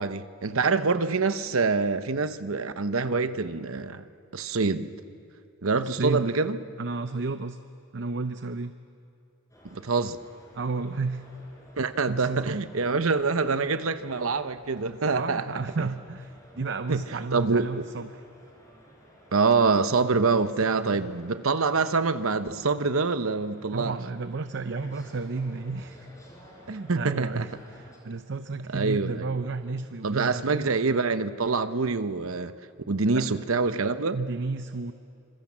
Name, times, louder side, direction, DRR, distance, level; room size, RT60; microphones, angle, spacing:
voice 1, 0.0-4.0 4.3-4.9 5.6-6.6 9.7-10.2 11.8-15.5 15.8-15.9 16.9-17.0 17.3-17.8 19.3-24.0 26.9-27.5 28.7-29.4 30.0-32.5 32.9-34.2, right 4 dB, 80° right, 0.9 m, -25 dB
voice 2, 5.8-6.3 6.8-7.6 7.9-8.7 10.5-11.3 12.1-12.6 15.1-18.1 20.2-21.1 23.7-26.1 26.7-30.8 33.1-33.4 34.1-34.9, right 3 dB, 60° right, 0.7 m, -32 dB
sound 1, 9.5-28.0, equal, 15° left, 5.2 m, -53 dB
28.0 x 25.5 x 7.4 m
head